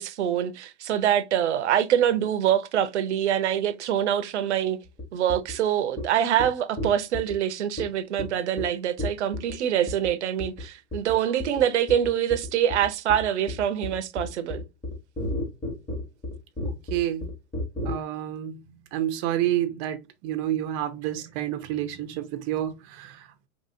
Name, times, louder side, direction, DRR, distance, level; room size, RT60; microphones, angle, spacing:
voice 1, 0.0-4.8 5.1-14.6, right 10 dB, 80° right, 0.6 m, -25 dB
sound 1, 5.0-5.1 5.3-5.5 6.0-6.1 6.4-6.5 6.8-7.3 7.8-7.9 8.2-8.3 8.6-8.7 9.0-9.5 9.9-10.1 10.4-10.6 10.9-11.1 11.4-11.6 11.9-17.9, left 1 dB, 10° left, 1.0 m, -31 dB
voice 2, 16.9-17.3 17.8-18.6 18.9-23.5, right 12 dB, 30° right, 0.5 m, -29 dB
2.9 x 2.6 x 2.6 m
hypercardioid pair, 130°, 34 cm